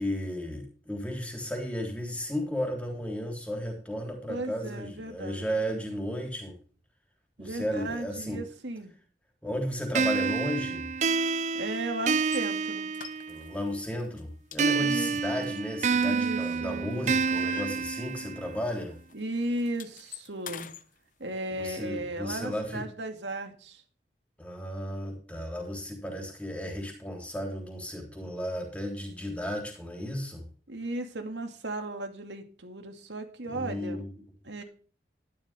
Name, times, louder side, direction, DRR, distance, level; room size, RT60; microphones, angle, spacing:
voice 1, 0.0-6.6 7.4-8.5 9.4-10.9 13.3-19.0 21.5-22.9 24.4-30.4 33.5-34.1, equal, 10° left, 1 dB, 3.5 m, -34 dB
voice 2, 4.3-5.5 7.4-8.9 11.5-12.9 14.8-17.4 19.1-20.7 21.2-23.8 30.7-34.0 34.4-34.6, right 1 dB, 90° right, 5 dB, 2.4 m, -36 dB
sound 1, 9.9-13.6 14.6-18.6, right 5 dB, 40° right, 0.5 m, -28 dB
sound 2, 12.2-12.5 12.9-13.7 14.0-14.2 14.5-16.6 16.9-18.4 18.6-18.8 19.1-20.8, left 8 dB, 45° left, 1.0 m, -45 dB
12.5 x 11.5 x 3.5 m, 0.40 s
head